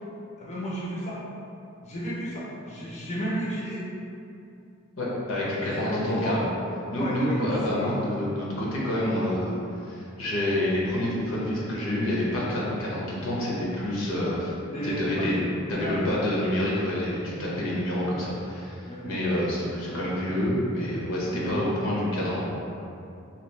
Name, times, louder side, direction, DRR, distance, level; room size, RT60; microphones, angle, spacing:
voice 1, 0.4-1.2 1.8-3.9 5.6-6.4 6.9-7.9 14.7-15.4 15.7-16.0 17.2-17.5 18.9-19.2 21.3-21.6, equal, 35° left, -7 dB, 0.6 m, -33 dB
voice 2, 5.0-6.5 6.9-14.5 14.8-15.4 15.7-22.4, left 1 dB, 75° left, -6 dB, 0.8 m, -28 dB
2.9 x 2.4 x 3.2 m, 2.7 s
head